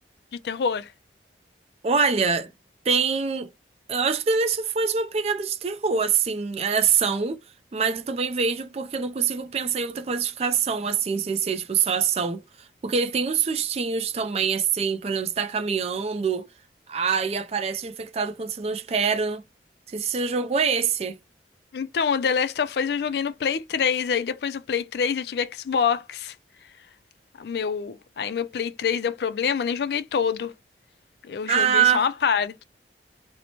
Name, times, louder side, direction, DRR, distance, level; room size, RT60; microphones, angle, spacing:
voice 1, 0.4-0.9 21.7-26.3 27.4-30.5 31.2-32.6, left 6 dB, 65° left, 0.3 m, -26 dB
voice 2, 1.8-2.5 2.9-3.5 3.9-7.4 7.7-12.4 12.8-16.5 16.9-19.4 19.9-21.2 31.5-32.1, right 6 dB, 35° right, 0.3 m, -24 dB
2.9 x 2.0 x 2.8 m
head